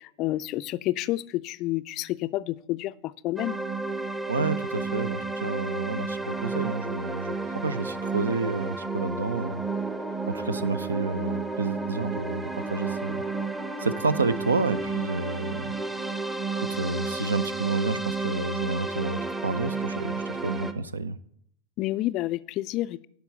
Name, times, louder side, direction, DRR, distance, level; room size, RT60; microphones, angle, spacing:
voice 1, 0.0-2.9 3.2-3.6 21.8-23.1, left 16 dB, 40° left, 0.3 m, -29 dB
sound 1, 3.4-20.7, right 3 dB, 10° right, 0.7 m, -32 dB
voice 2, 4.3-9.6 10.3-13.2 13.8-15.7 16.6-21.2, right 3 dB, 75° right, 0.5 m, -30 dB
11.5 x 4.7 x 6.9 m
figure-of-eight pair, 90°, 0 cm